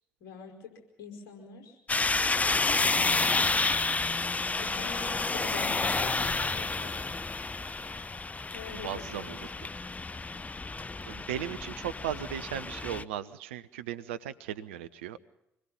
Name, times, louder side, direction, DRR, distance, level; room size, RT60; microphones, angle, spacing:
voice 1, 0.2-0.7 1.0-1.8 2.7-3.9 4.6-7.1 8.5-9.4, left 6 dB, 60° left, 2 dB, 5.2 m, -45 dB
sound 1, 1.9-13.0, left 3 dB, 20° left, 0.7 m, -30 dB
voice 2, 8.7-9.5 11.0-15.2, right 10 dB, 75° right, 11 dB, 0.7 m, -37 dB
25.0 x 21.0 x 5.5 m, 0.85 s
figure-of-eight pair, 45°, 6 cm